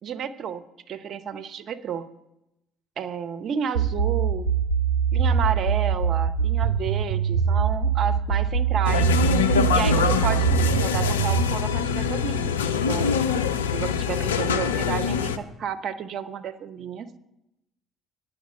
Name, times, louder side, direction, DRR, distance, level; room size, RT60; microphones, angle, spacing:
voice 1, 0.0-2.1 3.0-4.5 5.1-9.1 9.7-13.1 13.7-17.1, right 7 dB, 55° right, 10 dB, 0.7 m, -31 dB
sound 1, 3.7-11.4, right 7 dB, 85° right, 0.5 m, -22 dB
sound 2, 8.8-15.4, left 7 dB, 85° left, 0.5 m, -24 dB
9.4 x 6.7 x 8.4 m, 0.91 s
hypercardioid pair, 55°, 0 cm